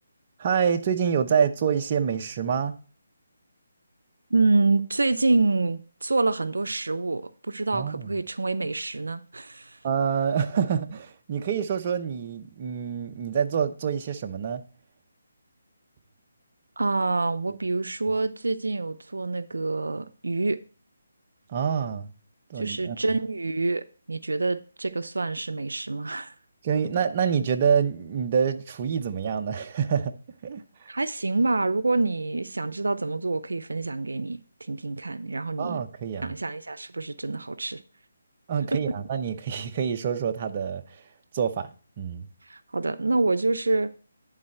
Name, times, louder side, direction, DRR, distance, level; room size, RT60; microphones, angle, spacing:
voice 1, 0.4-2.7 7.7-8.1 9.8-14.6 21.5-22.1 22.5-23.0 26.6-30.1 30.4-30.9 35.6-36.3 38.5-41.0 41.3-41.7 42.0-42.3, right 7 dB, 35° right, 0.7 m, -26 dB
voice 2, 4.3-9.8 16.8-20.6 22.6-26.3 30.9-35.8 36.2-37.8 42.4-43.9, right 3 dB, 85° right, 0.5 m, -27 dB
11.0 x 4.1 x 4.3 m
figure-of-eight pair, 155°, 0 cm